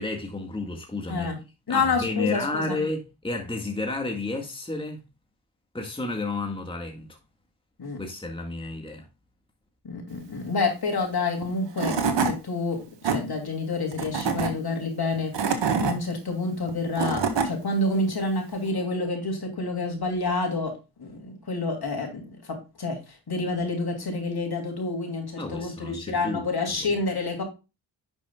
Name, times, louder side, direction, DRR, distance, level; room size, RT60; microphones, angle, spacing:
voice 1, 0.0-1.4 1.7-5.0 5.7-7.2 8.0-9.1 25.4-26.9, left 2 dB, 10° left, 1.8 m, -31 dB
voice 2, 1.1-1.4 1.7-2.8 7.8-8.0 9.8-20.7 21.0-23.0 23.3-27.4, left 3 dB, 50° left, 3.2 m, -28 dB
Tools / Wood, 11.4-11.5 11.8-12.3 12.8-13.2 13.9-14.5 15.1-15.9 16.7-17.5, right 5 dB, 60° right, 1.7 m, -25 dB
10.5 x 6.2 x 2.4 m
supercardioid pair, 50°, 50 cm